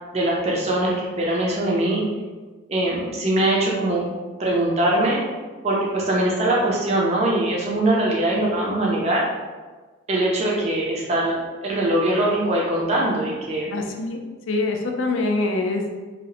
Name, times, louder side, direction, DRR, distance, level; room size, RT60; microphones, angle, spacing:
voice 1, 0.1-2.0 2.7-4.1 4.4-5.2 5.6-9.2 10.1-13.7, right 1 dB, 30° right, -4 dB, 0.4 m, -22 dB
voice 2, 13.7-14.2 14.5-15.9, left 2 dB, 65° left, 3 dB, 0.3 m, -24 dB
2.8 x 2.0 x 2.7 m, 1.3 s
head